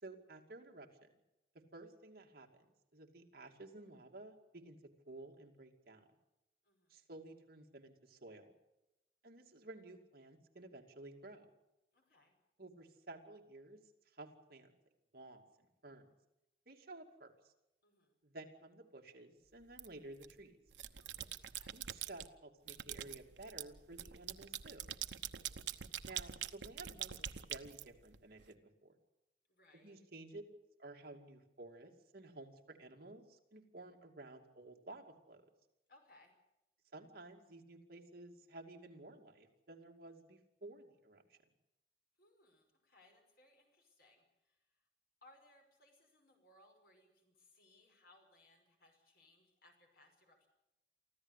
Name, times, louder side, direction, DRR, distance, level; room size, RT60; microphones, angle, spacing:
voice 1, 0.0-1.1 1.5-2.7 2.9-4.8 5.1-6.1 6.9-8.5 9.2-11.5 12.6-13.8 14.1-14.7 15.1-16.1 16.7-17.5 18.2-20.6 21.7-24.8 26.0-29.0 29.8-35.5 36.9-41.4, right 2 dB, 60° right, 2 dB, 2.5 m, -54 dB
voice 2, 6.6-7.0 11.9-12.4 17.8-18.2 21.0-21.8 29.5-30.0 35.9-36.3 42.2-44.8 45.2-50.5, left 2 dB, 60° left, 3 dB, 5.5 m, -67 dB
sound 1, 19.8-20.3 20.7-22.3 22.7-28.4, right 10 dB, 85° right, 0.9 m, -45 dB
24.5 x 15.0 x 8.3 m, 0.93 s
head